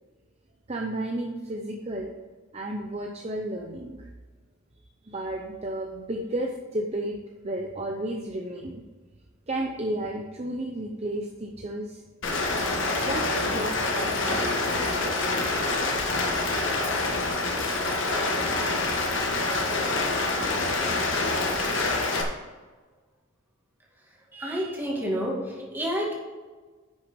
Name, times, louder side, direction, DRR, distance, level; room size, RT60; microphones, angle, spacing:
voice 1, 0.7-2.1 2.5-4.1 5.0-7.2 7.4-8.8 9.5-12.0 13.0-14.5 14.8-15.3, right 1 dB, 30° right, 1 dB, 0.7 m, -32 dB
Rain, 12.2-22.2, left 2 dB, 60° left, 1.6 m, -26 dB
voice 2, 24.3-26.1, equal, 10° right, -3 dB, 2.3 m, -29 dB
10.0 x 6.4 x 5.2 m, 1.3 s
head